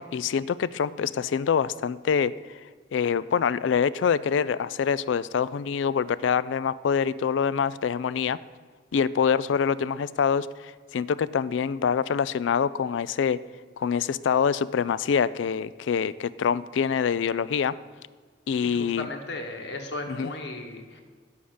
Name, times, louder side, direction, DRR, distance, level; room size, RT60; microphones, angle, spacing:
voice 1, 0.0-2.3 2.9-8.4 8.9-13.4 13.8-17.7 18.5-19.1 20.1-20.3, left 7 dB, 80° left, 18 dB, 0.3 m, -25 dB
voice 2, 18.6-21.0, left 2 dB, 65° left, 4 dB, 1.4 m, -36 dB
10.0 x 7.1 x 6.3 m, 1.5 s
head